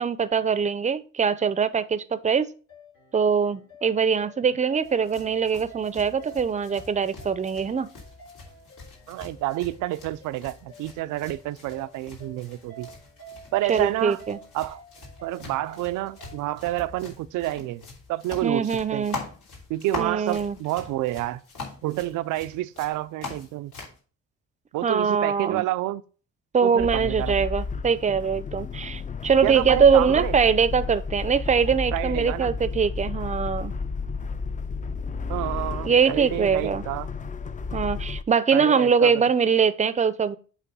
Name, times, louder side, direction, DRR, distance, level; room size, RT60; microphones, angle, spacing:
voice 1, 0.0-2.5 3.1-7.9 13.7-14.4 18.4-19.2 20.0-20.6 24.8-25.6 26.5-33.7 35.8-36.8 37.7-40.4, right 6 dB, 25° right, 0.5 m, -22 dB
sound 1, 2.7-16.9, right 3 dB, 60° left, 3.8 m, -49 dB
sound 2, 4.8-24.0, left 4 dB, 80° left, 3.0 m, -43 dB
voice 2, 9.1-12.9 13.5-14.2 14.5-14.8 15.2-17.8 18.1-19.1 19.7-21.4 21.8-23.7 24.7-26.0 26.6-27.4 29.4-30.4 31.9-32.5 35.3-37.1 38.5-39.2, right 16 dB, 90° right, 0.5 m, -29 dB
sound 3, 26.8-38.2, left 4 dB, 25° left, 0.5 m, -32 dB
8.3 x 3.0 x 5.4 m
cardioid pair, 90°, 30 cm